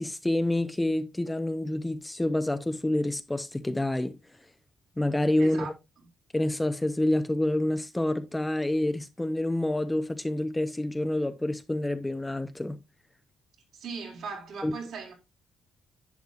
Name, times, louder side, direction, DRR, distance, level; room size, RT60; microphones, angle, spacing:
voice 1, 0.0-4.1 5.0-5.7 6.3-12.8 14.6-14.7, left 1 dB, 10° left, 0.8 m, -28 dB
voice 2, 5.4-5.7 13.7-15.1, right 5 dB, 75° right, 4.3 m, -38 dB
10.5 x 8.0 x 2.5 m
cardioid pair, 90°, 0 cm